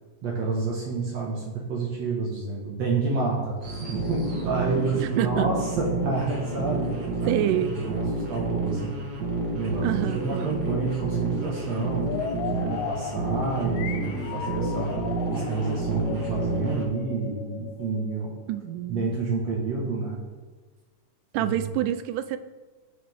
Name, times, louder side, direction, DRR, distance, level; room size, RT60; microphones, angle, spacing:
voice 1, 0.2-9.1 9.5-12.1 12.5-15.0 15.3-18.3 18.9-20.2 21.4-21.6, right 3 dB, 55° right, -3 dB, 2.7 m, -29 dB
sound 1, 3.6-16.9, right 3 dB, 40° right, 1.6 m, -30 dB
voice 2, 4.9-5.5 7.3-7.7 9.8-10.5 18.5-19.1 21.3-22.4, right 12 dB, 85° right, 12 dB, 2.1 m, -27 dB
sound 2, 12.0-18.7, left 8 dB, 75° left, 1.9 m, -36 dB
18.5 x 6.9 x 3.7 m, 1.3 s
omnidirectional pair, 3.7 m